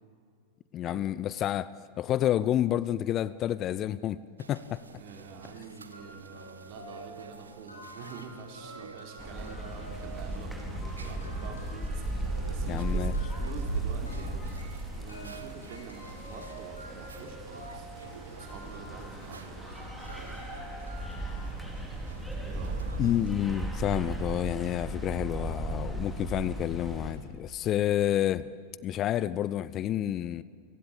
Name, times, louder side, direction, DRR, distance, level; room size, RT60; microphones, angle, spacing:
voice 1, 0.7-1.7 2.0-4.2 4.5-4.8 12.7-13.1 23.0-28.5 28.8-30.4, left 12 dB, 30° left, 18 dB, 0.6 m, -29 dB
sound 1, 4.4-23.4, right 4 dB, 75° right, 1.4 m, -46 dB
voice 2, 5.0-14.5 14.9-17.9 18.3-20.4 22.4-22.8, right 6 dB, 45° right, 4 dB, 3.9 m, -47 dB
sound 2, 5.9-21.4, equal, 85° left, 6.7 m, -50 dB
sound 3, 9.2-27.1, right 2 dB, ahead, 4.7 m, -36 dB
29.0 x 17.0 x 9.0 m, 2.2 s
figure-of-eight pair, 90°, 0 cm